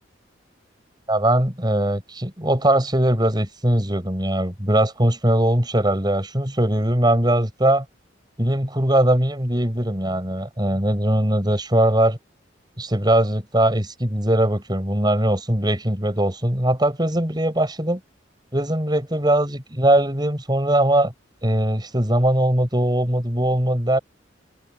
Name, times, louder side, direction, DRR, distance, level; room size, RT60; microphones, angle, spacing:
voice 1, 1.1-7.9 8.4-12.2 12.8-18.0 18.5-21.1 21.4-24.0, right 1 dB, 25° right, 7.1 m, -20 dB
head